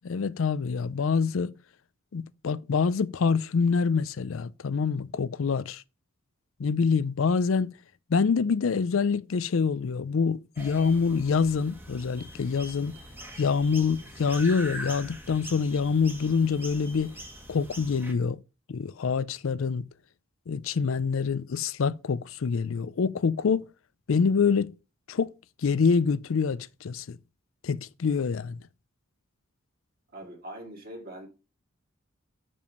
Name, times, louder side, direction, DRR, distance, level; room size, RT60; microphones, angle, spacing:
voice 1, 0.0-1.5 2.1-5.8 6.6-7.7 8.1-12.9 13.4-17.1 17.5-18.4 18.7-19.8 20.5-23.6 24.1-24.7 25.1-25.3 25.6-27.2 27.6-28.6, left 5 dB, 75° left, 0.5 m, -26 dB
sound 1, 10.6-18.1, equal, 10° right, 1.3 m, -43 dB
voice 2, 30.1-31.3, right 1 dB, 45° right, 2.2 m, -42 dB
6.9 x 5.4 x 5.2 m
head